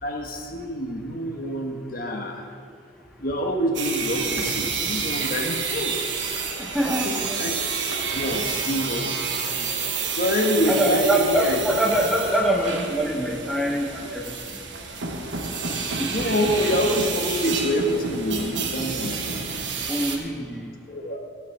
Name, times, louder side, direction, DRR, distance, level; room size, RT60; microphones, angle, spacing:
voice 1, 0.0-2.4 3.2-5.9 6.4-6.6 7.0-7.5 7.9-9.1 10.1-11.6 16.1-19.3 20.8-21.2, equal, 45° left, 1 dB, 1.5 m, -26 dB
sound 1, 3.7-20.2, right 5 dB, 75° right, 1.2 m, -29 dB
voice 2, 6.6-7.4 10.7-14.6 16.0-16.1 19.9-20.7, right 1 dB, ahead, 0 dB, 1.1 m, -24 dB
15.5 x 5.9 x 5.9 m, 2.4 s
head